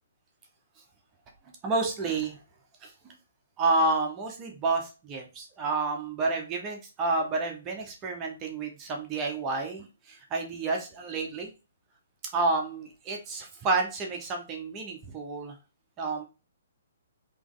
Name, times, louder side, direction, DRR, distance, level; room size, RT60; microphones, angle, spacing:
voice 1, 1.6-2.4 2.8-2.9 3.6-11.5 12.3-15.6 16.0-16.2, right 3 dB, 25° right, 2 dB, 1.0 m, -30 dB
3.4 x 3.1 x 3.8 m, 0.30 s
hypercardioid pair, 140°, 0 cm